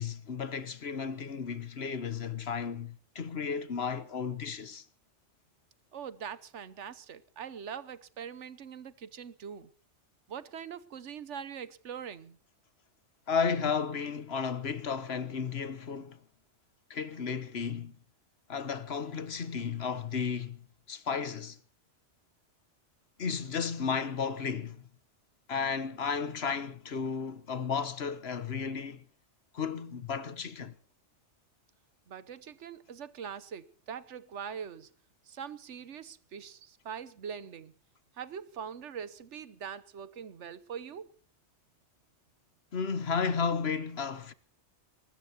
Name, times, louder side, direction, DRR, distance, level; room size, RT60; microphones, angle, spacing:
voice 1, 0.0-4.9 13.3-16.2 16.9-18.0 18.5-21.6 23.2-24.9 25.5-29.0 29.5-30.7 42.7-44.3, left 6 dB, 60° left, 1.3 m, -33 dB
voice 2, 5.9-9.7 10.3-12.4 32.1-34.9 35.3-37.7 38.2-41.1, right 7 dB, 85° right, 1.3 m, -42 dB
22.5 x 20.0 x 2.9 m
omnidirectional pair, 1.2 m